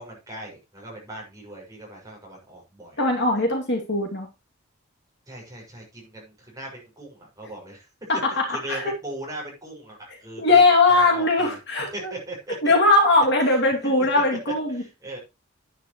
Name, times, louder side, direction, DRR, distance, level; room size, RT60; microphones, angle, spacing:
voice 1, 0.0-3.4 5.3-7.9 8.3-10.6 10.9-11.6 11.9-12.7 13.5-13.9 14.7-15.2, right 1 dB, 15° right, -2 dB, 6.3 m, -39 dB
voice 2, 3.0-4.3 8.1-8.9 10.4-12.1 12.6-14.8, left 2 dB, 55° left, 1 dB, 2.7 m, -20 dB
10.0 x 10.0 x 3.2 m, 0.25 s
head